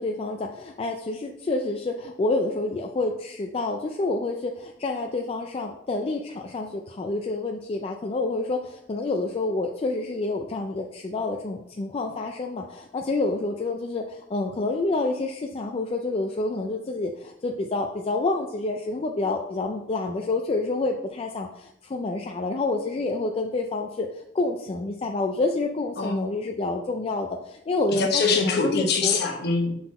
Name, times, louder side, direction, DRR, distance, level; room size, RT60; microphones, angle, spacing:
voice 1, 0.0-28.1 28.5-29.2, left 2 dB, 30° left, 2 dB, 0.3 m, -28 dB
voice 2, 27.9-29.8, left 4 dB, 55° left, 3 dB, 1.0 m, -24 dB
5.9 x 3.9 x 4.2 m, 0.78 s
head